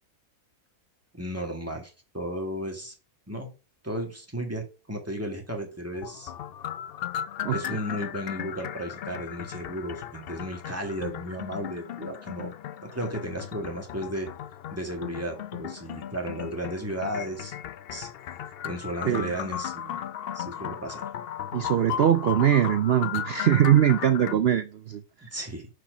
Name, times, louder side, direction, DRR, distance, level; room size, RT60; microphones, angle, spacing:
voice 1, 1.1-2.9 3.3-3.5 3.8-6.3 7.5-12.5 12.8-14.3 14.7-17.6 17.9-18.1 18.6-20.0 20.3-21.1 25.3-25.7, equal, 10° right, 1.8 m, -34 dB
sound 1, 5.9-24.3, left 10 dB, 75° left, 0.5 m, -36 dB
voice 2, 21.5-25.0, right 10 dB, 75° right, 0.5 m, -22 dB
6.5 x 5.9 x 5.0 m
omnidirectional pair, 1.6 m